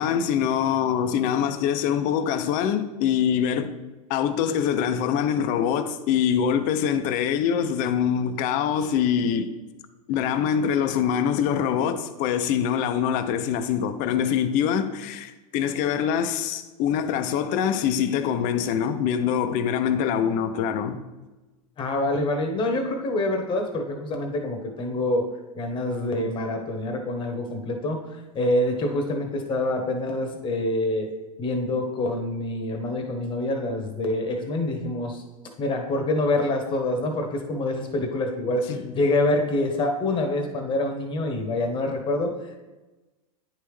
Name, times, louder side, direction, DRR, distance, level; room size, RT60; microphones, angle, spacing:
voice 1, 0.0-3.8 4.1-9.6 10.1-21.0 38.7-38.9, left 8 dB, 45° left, 0.6 m, -24 dB
voice 2, 21.8-25.3 25.5-28.0 28.3-31.1 31.4-35.2 35.6-42.6, left 2 dB, 25° left, 1.2 m, -26 dB
9.7 x 3.4 x 3.2 m
hypercardioid pair, 120°, 18 cm